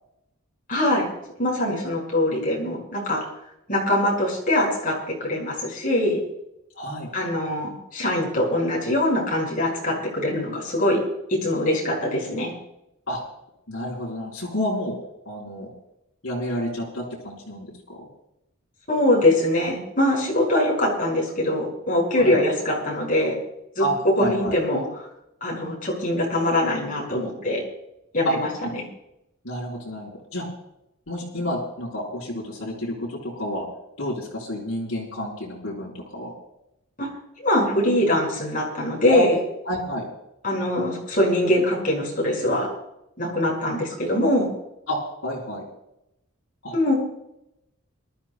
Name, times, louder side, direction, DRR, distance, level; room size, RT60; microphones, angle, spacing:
voice 1, 0.7-1.1 1.4-3.2 3.7-6.2 7.1-11.0 11.4-12.5 18.9-23.3 23.8-23.9 24.2-24.8 25.4-27.6 28.1-28.5 37.0-37.1 37.4-39.4 40.4-42.7 43.2-44.5 46.7-46.9, left 1 dB, 40° left, -2 dB, 5.5 m, -23 dB
voice 2, 6.7-7.1 13.1-13.2 13.7-15.0 15.2-15.7 16.2-18.1 22.1-22.3 23.8-24.6 28.2-28.3 29.4-30.5 31.1-33.7 34.0-36.3 39.1-39.2 39.6-40.1 44.9-45.6 46.6-46.7, equal, 65° left, -6 dB, 4.5 m, -29 dB
27.5 x 13.0 x 2.3 m, 0.85 s
head